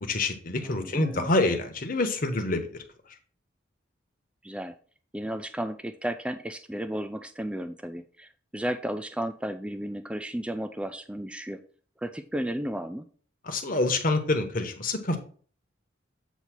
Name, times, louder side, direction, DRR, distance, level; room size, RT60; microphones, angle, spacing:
voice 1, 0.0-2.7 13.4-15.2, left 2 dB, 40° left, 6 dB, 1.0 m, -26 dB
voice 2, 0.6-1.3 4.4-4.7 5.1-11.6 12.0-13.1, right 1 dB, 5° right, 8 dB, 0.3 m, -33 dB
8.1 x 2.8 x 5.9 m, 0.43 s
head